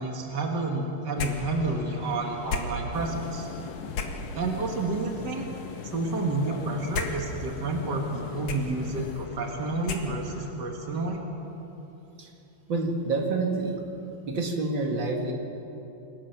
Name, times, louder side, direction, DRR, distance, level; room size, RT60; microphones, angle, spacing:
voice 1, 0.0-3.5 4.3-5.5 5.9-11.2, right 2 dB, 75° right, 1 dB, 1.0 m, -30 dB
sound 1, 1.1-10.5, left 3 dB, 55° left, 2.0 m, -37 dB
sound 2, 2.9-9.1, left 10 dB, 80° left, 2.6 m, -43 dB
voice 2, 12.7-13.8 14.2-15.3, right 3 dB, 45° right, 1 dB, 1.6 m, -28 dB
27.0 x 22.0 x 6.0 m, 3.0 s
omnidirectional pair, 5.2 m